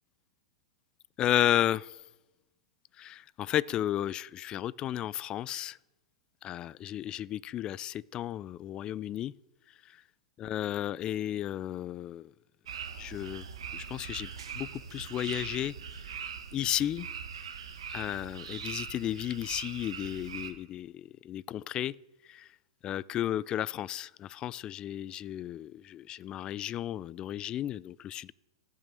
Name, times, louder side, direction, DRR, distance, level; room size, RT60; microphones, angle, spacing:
voice 1, 1.2-1.9 3.0-5.8 6.4-9.3 10.4-12.3 13.0-13.4 13.7-14.3 14.6-15.7 16.5-17.1 17.9-21.9 22.3-22.4 22.8-28.3, left 12 dB, 30° left, 22 dB, 0.3 m, -33 dB
sound 1, 12.7-20.5, right 7 dB, 85° right, 1.3 m, -41 dB
15.0 x 6.2 x 8.4 m, 1.0 s
hypercardioid pair, 120°, 3 cm